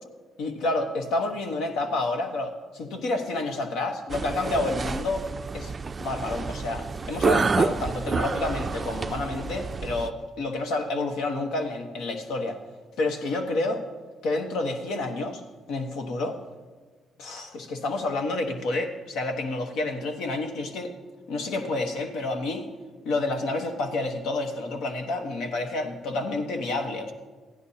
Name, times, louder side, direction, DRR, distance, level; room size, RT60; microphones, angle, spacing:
voice 1, 0.4-5.2 5.5-5.7 6.0-12.6 13.0-13.8 14.2-15.4 15.7-16.4 17.2-20.9 21.3-22.7 23.0-27.1, left 2 dB, 85° left, 5 dB, 1.1 m, -29 dB
sound 1, 4.1-10.1, right 4 dB, 35° right, 0.3 m, -29 dB
15.5 x 10.5 x 2.8 m, 1.4 s
cardioid pair, 90°, 0 cm